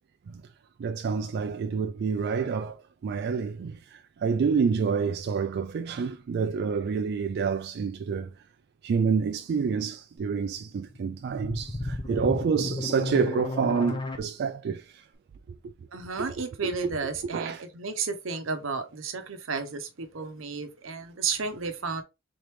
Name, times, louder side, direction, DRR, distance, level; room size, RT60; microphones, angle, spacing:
voice 1, 0.8-2.8 3.0-8.3 8.8-14.8 16.2-16.3 16.6-16.7 17.3-17.6 20.2-20.3, right 5 dB, 55° right, 0.3 m, -28 dB
sound 1, 10.9-14.2, left 2 dB, 25° left, 0.6 m, -33 dB
voice 2, 12.0-12.3 15.9-22.0, right 4 dB, 85° right, 0.8 m, -33 dB
3.9 x 3.3 x 3.1 m
head